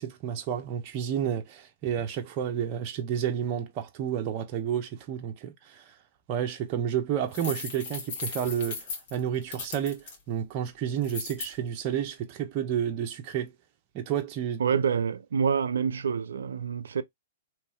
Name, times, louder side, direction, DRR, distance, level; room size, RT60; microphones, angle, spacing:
voice 1, 0.0-5.9 6.3-13.5 13.9-14.6, right 9 dB, 40° right, 0.7 m, -31 dB
sound 1, 7.3-10.1 11.0-11.5, left 4 dB, 50° left, 1.5 m, -37 dB
voice 2, 14.6-17.0, right 6 dB, 75° right, 0.4 m, -27 dB
3.4 x 3.1 x 3.1 m
hypercardioid pair, 120°, 0 cm